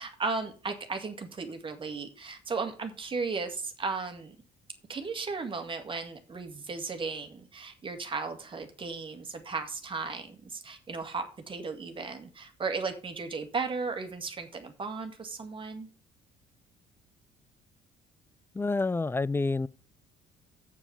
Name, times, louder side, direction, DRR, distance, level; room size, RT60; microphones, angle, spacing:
voice 1, 0.0-4.4 4.9-15.9, right 4 dB, 30° right, 2.1 m, -35 dB
voice 2, 18.6-19.7, left 3 dB, 15° left, 0.4 m, -28 dB
7.4 x 7.0 x 7.0 m
cardioid pair, 110°, 17 cm